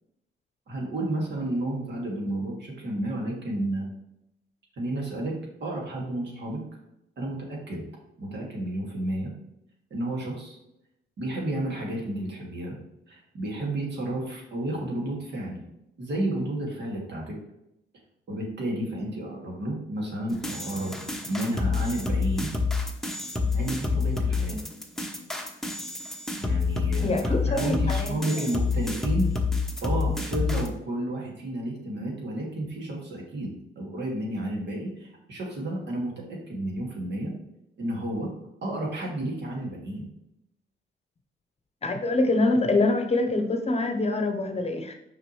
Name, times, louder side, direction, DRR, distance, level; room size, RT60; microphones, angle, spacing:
voice 1, 0.7-3.9 4.8-6.6 7.2-7.8 8.2-9.3 9.9-10.6 11.2-12.8 13.1-15.6 16.0-17.4 18.3-22.5 23.5-24.6 26.4-29.3 29.8-37.3 37.8-38.3 38.6-40.1, right 1 dB, 60° right, -1 dB, 2.2 m, -31 dB
sound 1, 20.3-30.7, left 4 dB, ahead, 0.9 m, -28 dB
voice 2, 27.0-28.1 41.8-44.9, left 2 dB, 30° left, 5 dB, 0.9 m, -25 dB
5.9 x 5.2 x 3.2 m, 0.83 s
cardioid pair, 90°, 20 cm